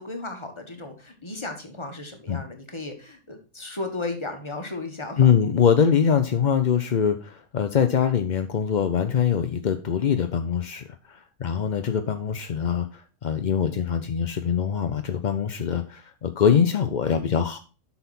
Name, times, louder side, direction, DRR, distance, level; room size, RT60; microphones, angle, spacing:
voice 1, 0.0-5.3, left 2 dB, 20° left, 4 dB, 1.4 m, -35 dB
voice 2, 5.2-17.6, left 7 dB, 55° left, 8 dB, 0.5 m, -23 dB
7.9 x 5.8 x 4.2 m, 0.33 s
omnidirectional pair, 1.5 m